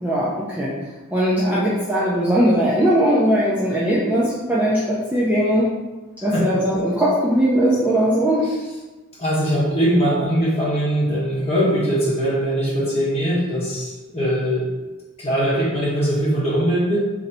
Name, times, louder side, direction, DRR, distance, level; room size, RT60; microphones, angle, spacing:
voice 1, 0.0-0.7 1.1-5.7 6.2-8.5, equal, 10° right, -7 dB, 0.5 m, -19 dB
voice 2, 9.2-14.7 15.2-17.0, equal, 25° left, -7 dB, 1.3 m, -21 dB
3.1 x 2.7 x 4.1 m, 1.2 s
head